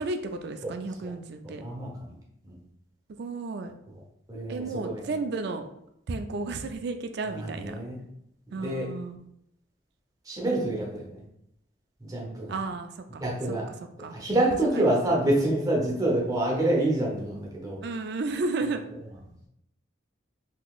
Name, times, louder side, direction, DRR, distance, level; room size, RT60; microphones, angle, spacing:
voice 1, 0.0-1.6 3.2-3.7 4.5-5.7 6.1-7.7 8.5-9.2 12.5-13.2 13.5-13.6 14.0-14.2 17.8-18.8, right 3 dB, 55° right, 7 dB, 0.3 m, -32 dB
voice 2, 1.4-2.2 2.4-2.6 3.9-4.0 4.3-5.1 7.4-8.0 8.5-8.9 10.2-11.2 12.0-12.5 13.2-13.7 14.0-17.8, right 1 dB, 20° right, -3 dB, 0.8 m, -27 dB
3.9 x 2.8 x 2.3 m, 0.77 s
head